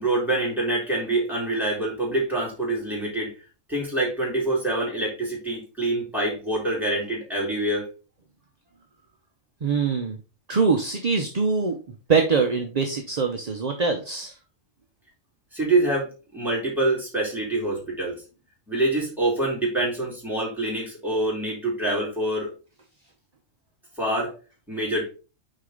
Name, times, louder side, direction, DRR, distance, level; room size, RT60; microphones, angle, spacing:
voice 1, 0.0-3.3 3.7-7.9 15.5-18.2 18.7-22.5 24.0-24.3 24.7-25.1, right 2 dB, ahead, -5 dB, 3.7 m, -25 dB
voice 2, 9.6-10.2 10.5-11.8 12.1-14.3, right 5 dB, 35° right, 4 dB, 0.7 m, -23 dB
6.5 x 4.8 x 3.8 m, 0.34 s
omnidirectional pair, 1.4 m